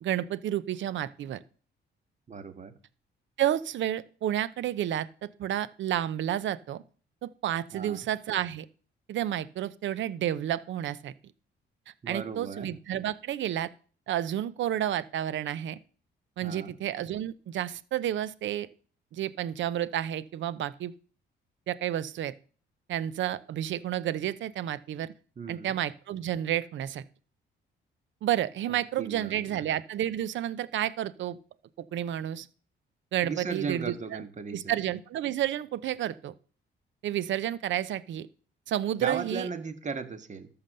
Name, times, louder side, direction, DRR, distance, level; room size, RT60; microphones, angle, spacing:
voice 1, 0.0-1.4 3.4-6.8 7.2-8.6 9.1-11.1 12.1-13.7 14.1-15.8 16.4-18.7 19.1-20.9 21.7-22.3 22.9-25.1 25.5-27.0 28.2-31.4 31.9-32.5 33.1-34.2 34.5-36.3 37.0-38.3 38.7-39.5, right 11 dB, 70° right, 17 dB, 0.7 m, -31 dB
voice 2, 2.3-2.8 7.7-8.1 12.0-12.7 16.4-16.8 25.4-25.8 28.7-29.6 33.2-34.8 39.0-40.5, right 5 dB, 35° right, 9 dB, 1.6 m, -37 dB
13.0 x 5.9 x 6.6 m, 0.43 s
cardioid pair, 90°, 20 cm